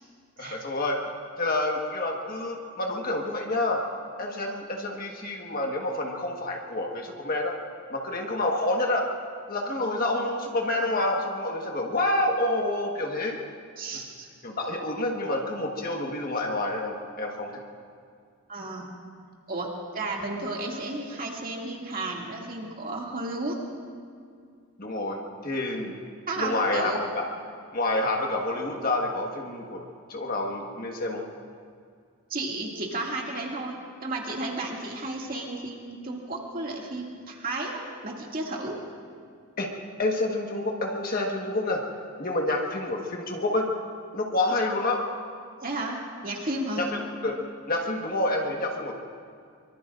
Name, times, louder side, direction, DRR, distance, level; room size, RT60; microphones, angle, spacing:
voice 1, 0.4-1.0 1.4-3.8 4.2-7.6 7.9-9.1 9.5-13.4 14.4-17.5 24.8-26.0 26.4-27.2 27.7-31.2 39.6-41.8 42.2-43.7 44.1-45.0 46.8-47.4 47.7-48.9, left 2 dB, 40° left, 0 dB, 1.4 m, -28 dB
voice 2, 13.8-14.3 18.5-18.9 19.5-23.6 26.3-27.0 32.3-38.8 45.6-46.8, right 2 dB, 40° right, -1 dB, 2.3 m, -33 dB
24.0 x 23.5 x 2.5 m, 2.2 s
head